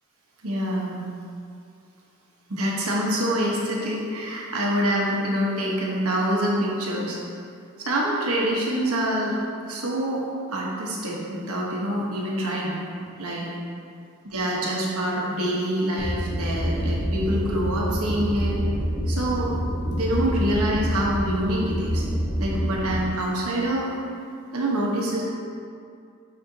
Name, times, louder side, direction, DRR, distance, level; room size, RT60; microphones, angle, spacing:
voice 1, 0.4-1.1 2.5-7.2 7.8-9.4 9.6-10.2 10.5-12.7 13.2-13.5 14.3-18.5 19.1-19.6 19.8-22.0 22.4-23.9 24.5-25.2, right 1 dB, 80° right, -4 dB, 1.2 m, -26 dB
sound 1, 16.0-23.0, equal, 10° left, 1.1 m, -27 dB
8.7 x 4.3 x 2.9 m, 2.3 s
head